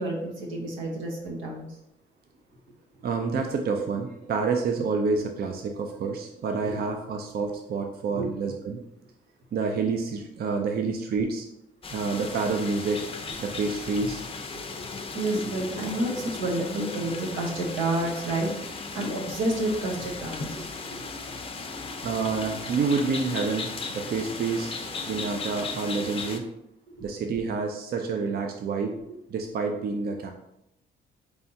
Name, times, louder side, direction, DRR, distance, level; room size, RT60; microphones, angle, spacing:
voice 1, 0.0-1.8 6.6-6.8 8.1-8.3 14.0-14.1 15.1-21.0 27.0-27.1 29.1-29.2, right 1 dB, 85° right, -1 dB, 1.1 m, -30 dB
voice 2, 3.0-8.8 9.5-11.5 11.9-13.0 13.4-14.2 14.5-14.6 22.0-24.7 25.1-26.5 27.0-29.0 29.3-30.3, right 4 dB, 50° right, 3 dB, 0.5 m, -28 dB
sound 1, 11.8-26.4, left 4 dB, 30° left, 0.5 m, -36 dB
4.3 x 3.4 x 2.8 m, 0.83 s
cardioid pair, 90°, 20 cm